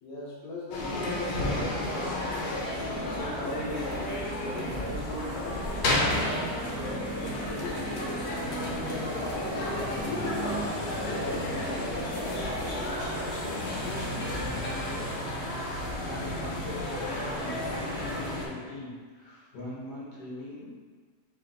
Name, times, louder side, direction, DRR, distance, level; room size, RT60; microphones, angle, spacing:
voice 1, 0.0-2.5 3.1-4.0 4.4-7.9 8.5-10.6 11.0-11.9, left 1 dB, 75° left, -5 dB, 1.2 m, -40 dB
sound 1, 0.7-18.5, left 1 dB, 55° left, 0.8 m, -32 dB
sound 2, 6.0-17.9, right 4 dB, 60° right, 0.7 m, -42 dB
voice 2, 16.0-20.7, left 1 dB, 90° left, -6 dB, 1.7 m, -41 dB
4.2 x 2.4 x 3.8 m, 1.5 s
omnidirectional pair, 1.6 m